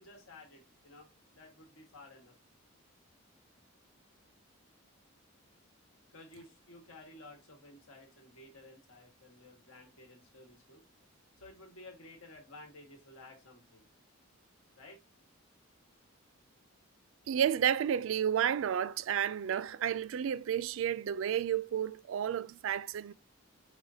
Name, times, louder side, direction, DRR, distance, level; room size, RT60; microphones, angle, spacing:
voice 1, 0.0-2.3 6.1-10.8 11.4-13.8 14.8-15.0, left 2 dB, 80° left, 1.4 m, -54 dB
voice 2, 17.3-23.1, right 9 dB, 65° right, 0.3 m, -31 dB
4.8 x 3.6 x 2.7 m
head